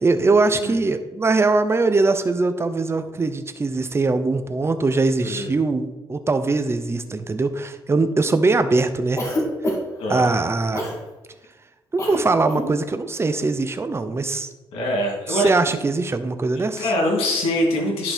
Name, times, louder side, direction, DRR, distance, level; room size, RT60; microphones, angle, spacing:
voice 1, 0.0-9.3 10.1-10.8 11.9-14.5 15.3-16.9, right 3 dB, 25° right, 9 dB, 0.9 m, -21 dB
Cough, 9.2-10.0 10.7-11.0 12.0-12.2 12.5-12.7, left 1 dB, 30° left, 2.7 m, -26 dB
voice 2, 10.0-10.3 14.7-15.5 16.5-18.1, left 1 dB, 85° left, -1 dB, 3.1 m, -23 dB
10.5 x 5.4 x 4.5 m, 1.1 s
cardioid pair, 80°, 10 cm